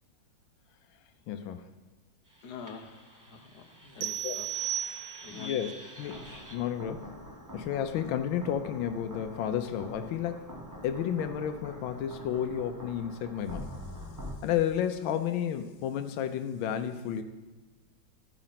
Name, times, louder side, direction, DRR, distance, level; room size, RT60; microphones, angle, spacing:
voice 1, 1.3-1.7 4.2-4.4 5.3-5.7 6.0-6.2 6.5-7.1 7.5-10.5 10.8-13.7 14.4-17.2, left 9 dB, 85° left, 8 dB, 1.4 m, -31 dB
sound 1, 2.3-14.4, equal, 25° right, 0.4 m, -46 dB
voice 2, 2.4-4.5 5.2-5.6, left 6 dB, 60° left, 5 dB, 1.3 m, -46 dB
sound 2, 4.0-5.5, right 12 dB, 70° right, 1.1 m, -34 dB
13.5 x 5.0 x 5.7 m, 1.2 s
omnidirectional pair, 2.1 m